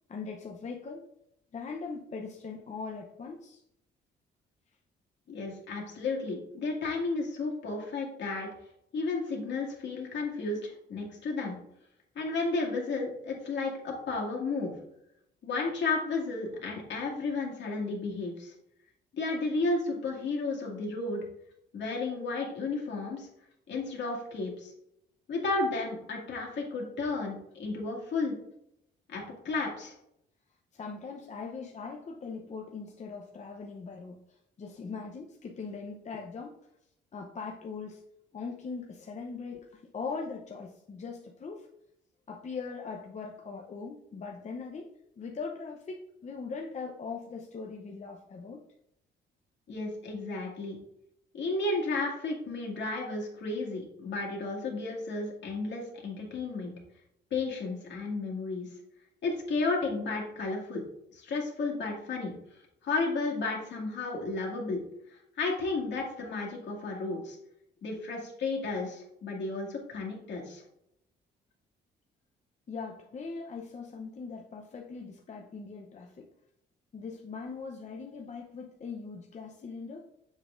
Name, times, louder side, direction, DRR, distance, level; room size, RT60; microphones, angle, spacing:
voice 1, 0.1-1.0 1.5-3.6 30.7-36.6 37.1-38.0 38.3-41.7 42.3-44.9 45.2-48.6 72.7-76.3 76.9-80.1, left 4 dB, 35° left, 1 dB, 0.7 m, -40 dB
voice 2, 5.3-8.5 8.9-11.6 12.2-14.7 15.4-18.5 19.1-21.2 21.7-23.3 23.7-24.7 25.3-28.4 29.1-30.0 49.7-50.8 51.3-56.7 57.3-58.7 59.2-60.8 61.1-62.3 62.8-64.8 65.4-67.4 67.8-70.6, left 3 dB, 65° left, -2 dB, 2.1 m, -33 dB
7.3 x 5.3 x 2.5 m, 0.77 s
cardioid pair, 90°, 20 cm